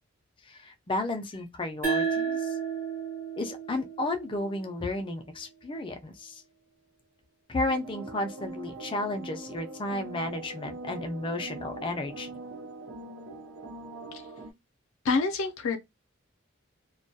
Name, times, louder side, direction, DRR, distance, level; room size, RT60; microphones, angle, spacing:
voice 1, 0.4-2.6 3.4-6.4 7.5-12.3, left 2 dB, 25° left, 0.4 m, -33 dB
sound 1, 1.8-5.0, right 6 dB, 40° right, 0.7 m, -32 dB
sound 2, 7.6-14.5, right 2 dB, 80° right, 0.5 m, -42 dB
voice 2, 15.0-15.8, left 4 dB, 80° left, 0.5 m, -27 dB
2.2 x 2.2 x 2.6 m
head